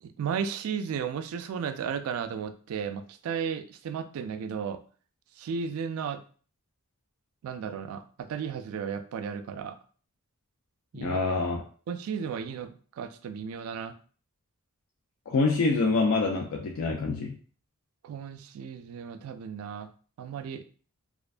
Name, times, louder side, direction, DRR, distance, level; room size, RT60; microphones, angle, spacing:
voice 1, 0.0-4.8 5.4-6.2 7.4-9.8 10.9-11.2 11.9-13.9 18.0-19.9 20.2-20.6, right 7 dB, 80° right, 11 dB, 0.3 m, -34 dB
voice 2, 11.0-11.6 15.3-17.4, left 3 dB, 65° left, 0 dB, 0.3 m, -26 dB
2.4 x 2.2 x 2.4 m, 0.41 s
head